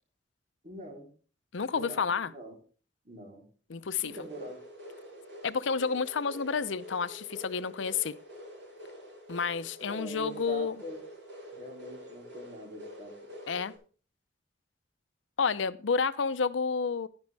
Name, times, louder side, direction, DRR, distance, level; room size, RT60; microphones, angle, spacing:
voice 1, 0.6-1.1 1.7-2.6 3.0-3.4 4.0-4.6 9.9-11.0 11.5-13.1, right 1 dB, 40° right, 3.5 m, -43 dB
voice 2, 1.5-2.3 3.7-4.1 5.4-8.2 9.3-10.8 13.5-13.7 15.4-17.1, left 5 dB, 85° left, 0.6 m, -30 dB
sound 1, 4.0-13.8, equal, 75° right, 5.8 m, -47 dB
10.5 x 10.5 x 3.4 m
head